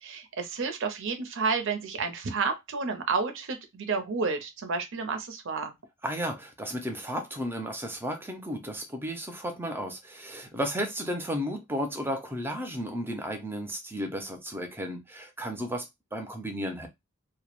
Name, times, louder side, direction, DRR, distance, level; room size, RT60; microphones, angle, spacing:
voice 1, 0.0-5.8, right 4 dB, 65° right, 0.6 m, -30 dB
voice 2, 6.0-16.9, equal, 10° right, 0.5 m, -33 dB
2.2 x 2.0 x 2.9 m
head